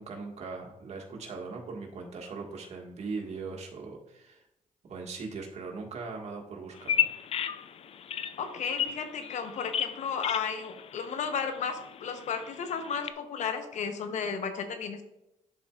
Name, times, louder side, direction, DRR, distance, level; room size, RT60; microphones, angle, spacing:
voice 1, 0.0-4.4 4.9-7.1, right 4 dB, 55° right, 0 dB, 1.6 m, -40 dB
Bird vocalization bird call bird song, 6.8-13.1, left 9 dB, 50° left, 0.4 m, -34 dB
voice 2, 8.4-15.0, left 6 dB, 65° left, 8 dB, 0.8 m, -33 dB
10.5 x 4.2 x 2.4 m, 0.88 s
cardioid pair, 80°, 13 cm